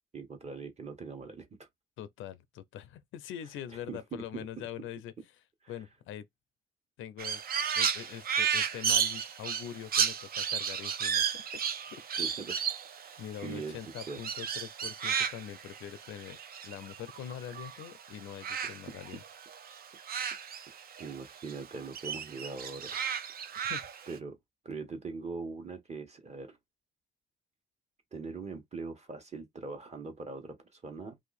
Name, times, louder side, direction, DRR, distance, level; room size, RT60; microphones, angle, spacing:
voice 1, 0.1-1.7 3.9-4.5 5.6-5.7 12.2-12.6 12.9-14.2 18.6-18.8 20.7-23.0 23.5-23.7 24.1-24.4 24.6-26.6 28.1-31.2, right 4 dB, 35° right, 1.3 m, -42 dB
voice 2, 2.0-5.1 5.7-6.3 7.0-7.4 7.7-12.0 13.2-16.4 16.6-19.2 23.6-23.9, left 10 dB, 80° left, 0.5 m, -43 dB
Crow, 7.2-17.9 18.1-21.2 21.5-24.2, right 7 dB, 50° right, 0.5 m, -33 dB
2.7 x 2.5 x 4.0 m
cardioid pair, 90°, 20 cm